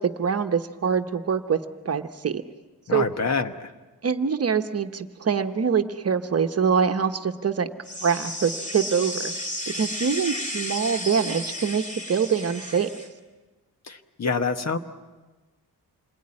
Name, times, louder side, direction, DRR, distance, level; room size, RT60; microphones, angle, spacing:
voice 1, 0.0-1.6 1.8-2.4 2.9-3.1 4.0-7.7 8.0-9.3 9.7-12.9, right 6 dB, 40° right, 7 dB, 1.1 m, -24 dB
voice 2, 2.9-3.7 13.9-14.8, left 4 dB, 45° left, 9 dB, 1.3 m, -26 dB
sound 1, 7.8-13.1, left 1 dB, 20° left, 2.6 m, -33 dB
28.0 x 21.5 x 9.8 m, 1.2 s
wide cardioid pair, 165°, 37 cm